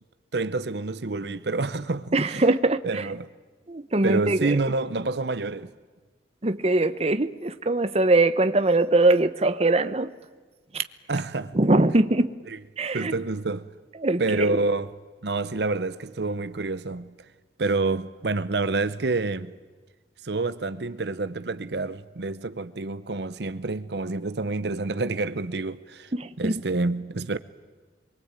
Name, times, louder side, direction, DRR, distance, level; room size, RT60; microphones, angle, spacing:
voice 1, 0.3-2.4 2.8-3.3 4.0-5.7 11.1-11.5 12.5-12.6 12.9-13.6 14.2-14.9 15.2-17.1 17.6-19.5 20.2-27.4, right 3 dB, 65° right, 0.8 m, -28 dB
voice 2, 2.1-3.1 3.7-4.5 6.4-10.1 10.7-10.8 11.5-12.3 12.8-13.1 14.0-14.6 26.1-26.6, right 2 dB, 35° right, 1.0 m, -22 dB
24.5 x 23.0 x 8.9 m
head